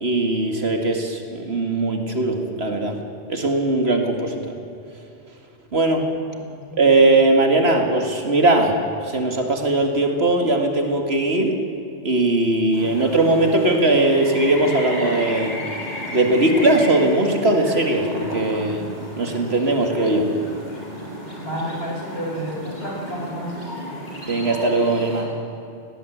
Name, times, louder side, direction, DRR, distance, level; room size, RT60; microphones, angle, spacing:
voice 1, 0.0-3.0 3.3-4.5 5.7-6.1 6.8-8.8 9.0-11.6 12.0-15.6 16.1-18.9 19.2-20.3 24.3-25.3, right 2 dB, 65° right, 4 dB, 2.3 m, -19 dB
voice 2, 6.3-6.8 21.4-23.5, equal, 60° left, -1 dB, 4.8 m, -31 dB
sound 1, 12.7-25.2, equal, 40° left, 5.5 m, -34 dB
18.5 x 18.0 x 8.1 m, 2.7 s
omnidirectional pair, 1.2 m